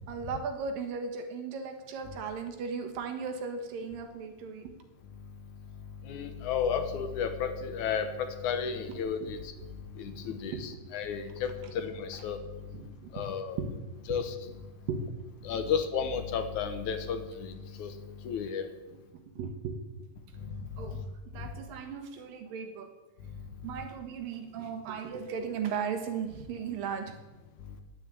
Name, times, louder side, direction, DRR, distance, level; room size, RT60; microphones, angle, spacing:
voice 1, 0.1-4.7 10.1-10.7 12.8-13.1 13.6-13.7 14.9-15.0 19.4-19.8 20.8-21.0 21.3-22.9 23.6-27.1, right 6 dB, 75° right, 6 dB, 3.1 m, -36 dB
voice 2, 6.1-9.5 10.0-12.4 13.1-13.6 14.1-14.3 15.4-17.9 18.2-18.7 20.4-20.5, left 7 dB, 70° left, 8 dB, 2.3 m, -33 dB
11.0 x 9.8 x 9.0 m, 1.1 s
omnidirectional pair, 4.0 m